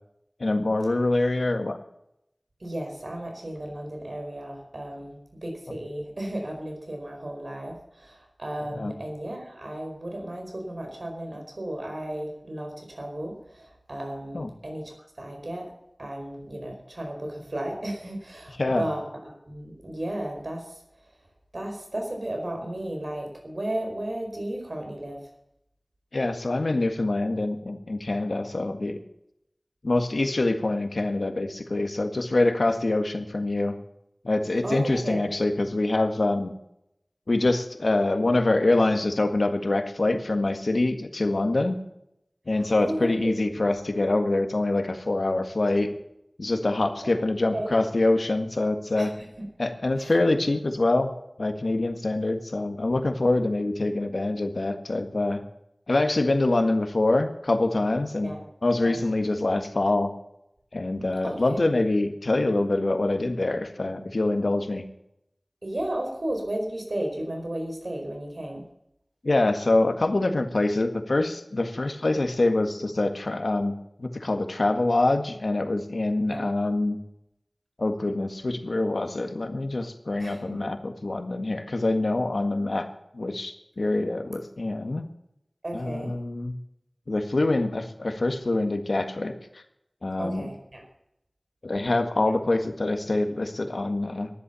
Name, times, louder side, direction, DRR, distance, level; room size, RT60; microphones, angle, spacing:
voice 1, 0.4-1.8 8.7-8.9 14.3-14.5 18.6-18.8 26.1-29.0 29.8-33.8 34.2-36.5 37.3-41.8 42.5-45.9 46.4-49.1 49.6-51.1 51.4-55.4 55.9-58.3 58.6-60.1 60.7-64.8 69.2-77.0 77.8-82.9 83.1-85.0 85.7-86.6 87.1-89.6 90.0-90.5 91.6-94.3, left 2 dB, 85° left, 6 dB, 1.7 m, -25 dB
voice 2, 2.6-15.7 16.0-21.1 21.5-25.3 34.6-35.3 42.5-43.6 47.0-47.1 47.5-47.7 49.0-49.5 50.0-50.2 58.2-58.4 58.8-59.0 61.2-61.6 65.6-68.6 76.3-76.5 80.2-80.7 85.6-86.1 90.2-90.8 92.3-92.4 93.2-93.3, right 1 dB, 70° right, 2 dB, 4.9 m, -34 dB
13.5 x 11.5 x 7.0 m, 0.79 s
wide cardioid pair, 50°, 0 cm